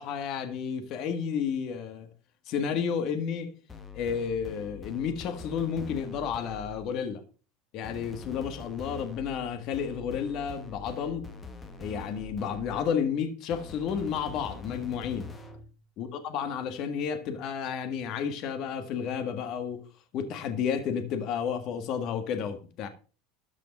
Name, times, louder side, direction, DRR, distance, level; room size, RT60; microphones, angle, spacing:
voice 1, 0.0-2.1 2.5-3.5 3.9-7.2 7.7-11.2 11.8-15.3 16.0-19.8 20.1-22.9, left 7 dB, 45° left, 1.7 m, -31 dB
sound 1, 3.7-7.0 7.8-13.0 13.5-15.7, left 4 dB, 15° left, 1.6 m, -44 dB
13.0 x 5.1 x 6.4 m
supercardioid pair, 155°, 0 cm